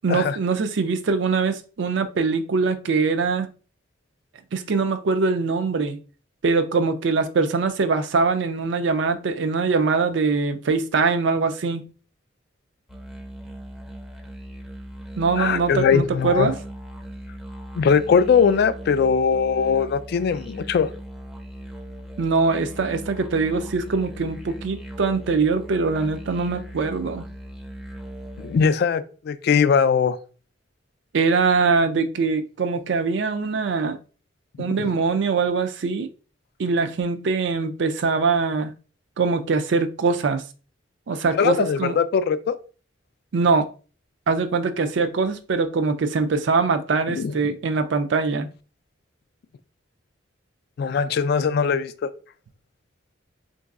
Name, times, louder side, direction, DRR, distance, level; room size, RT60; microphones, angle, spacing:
voice 1, 0.0-3.5 4.5-6.0 6.4-11.8 15.2-16.6 22.2-27.3 31.1-34.0 34.6-36.1 36.6-38.7 39.2-40.4 41.1-42.0 43.3-43.7 44.3-48.5, right 4 dB, 65° right, 0.4 m, -22 dB
sound 1, 12.9-28.7, equal, ahead, 0.5 m, -39 dB
voice 2, 15.4-16.5 17.8-20.9 28.4-30.2 34.6-34.8 41.4-42.5 47.1-47.3 50.8-52.1, left 6 dB, 55° left, 0.3 m, -20 dB
3.9 x 2.6 x 2.3 m
head